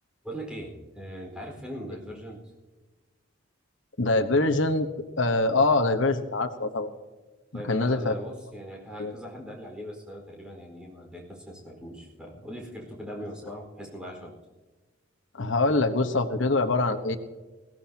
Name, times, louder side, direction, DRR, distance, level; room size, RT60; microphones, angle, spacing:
voice 1, 0.2-2.4 7.5-14.3, equal, 5° right, -1 dB, 4.6 m, -40 dB
voice 2, 4.0-4.9 5.2-6.9 7.7-8.1 9.0-9.1 15.3-17.2, left 2 dB, 75° left, 6 dB, 1.2 m, -24 dB
21.0 x 17.0 x 2.9 m, 1.2 s
head